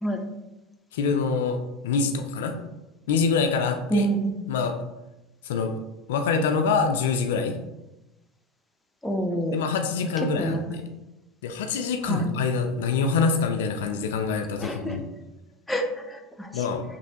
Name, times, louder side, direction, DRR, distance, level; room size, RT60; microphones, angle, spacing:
voice 1, 0.9-1.6 1.8-2.6 3.1-4.1 4.5-4.8 5.4-5.7 6.1-7.6 9.5-10.8 11.4-15.0 16.5-16.8, left 5 dB, 80° left, 5 dB, 0.3 m, -25 dB
voice 2, 3.9-4.4 9.0-9.6 10.3-10.8 12.0-12.2 14.6-15.0 15.7-16.5, right 1 dB, 10° left, 3 dB, 0.5 m, -27 dB
3.1 x 2.6 x 2.8 m, 0.98 s
hypercardioid pair, 85°, 0 cm